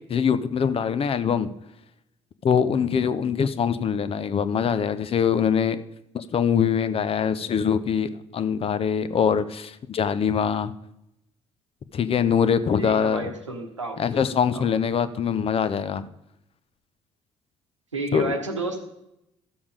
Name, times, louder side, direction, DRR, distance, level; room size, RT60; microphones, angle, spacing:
voice 1, 0.1-1.5 2.4-5.8 6.1-10.7 11.9-13.3 14.0-16.1 18.1-18.3, left 7 dB, 40° left, 13 dB, 0.7 m, -23 dB
voice 2, 12.8-14.7 17.9-18.8, right 2 dB, 90° right, 3 dB, 1.1 m, -31 dB
13.0 x 7.1 x 5.0 m, 0.84 s
figure-of-eight pair, 50°, 15 cm